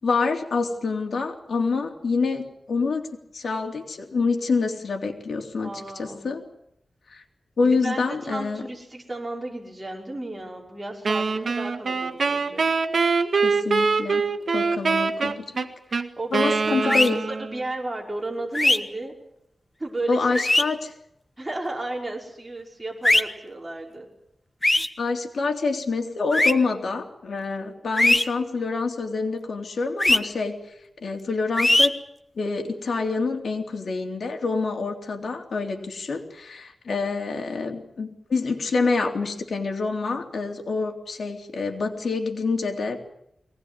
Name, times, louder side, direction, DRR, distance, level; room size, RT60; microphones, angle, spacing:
voice 1, 0.0-3.1 3.3-6.4 7.1-7.2 7.6-8.6 13.4-14.2 14.5-16.0 16.3-17.2 20.1-20.9 25.0-30.7 31.0-32.0 32.4-43.0, left 4 dB, 80° left, 3 dB, 3.5 m, -27 dB
voice 2, 5.6-6.3 7.6-12.6 16.2-17.0 17.3-19.1 19.8-20.4 21.4-24.1, right 2 dB, 20° right, -1 dB, 5.6 m, -33 dB
Wind instrument woodwind instrument, 11.0-17.6, right 4 dB, 70° right, 1.8 m, -24 dB
sound 1, 16.9-17.1 18.5-18.8 20.3-20.6 23.0-23.2 24.6-24.9 26.3-26.5 28.0-28.2 30.0-30.2 31.6-31.9, left 1 dB, 20° left, 1.4 m, -18 dB
23.0 x 19.0 x 9.8 m, 0.78 s
wide cardioid pair, 100°, 0 cm